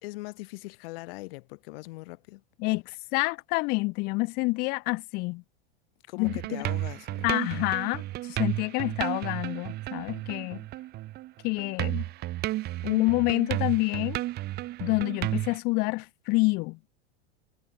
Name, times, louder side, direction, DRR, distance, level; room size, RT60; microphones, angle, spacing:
voice 1, 0.0-2.4 6.1-7.4, left 23 dB, 60° left, 1.6 m, -41 dB
voice 2, 2.6-5.4 6.2-6.3 7.2-8.0 8.3-10.6 11.4-12.1 12.8-14.2 14.8-16.8, left 26 dB, 30° left, 0.4 m, -27 dB
sound 1, 6.2-11.3 11.6-15.6, right 16 dB, 30° right, 0.8 m, -33 dB
supercardioid pair, 145°, 33 cm